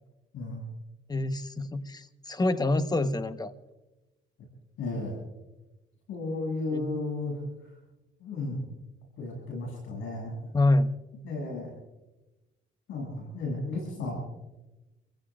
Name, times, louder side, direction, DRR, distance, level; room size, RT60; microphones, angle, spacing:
voice 1, 1.1-3.5 6.7-6.9 10.5-10.9, left 2 dB, 20° left, 10 dB, 1.1 m, -26 dB
voice 2, 4.8-5.2 6.1-7.8 8.2-8.6 9.2-10.4 11.2-11.7 12.9-14.1, left 2 dB, 85° left, -1 dB, 7.5 m, -34 dB
30.0 x 16.0 x 2.5 m, 1.0 s
cardioid pair, 90°, 20 cm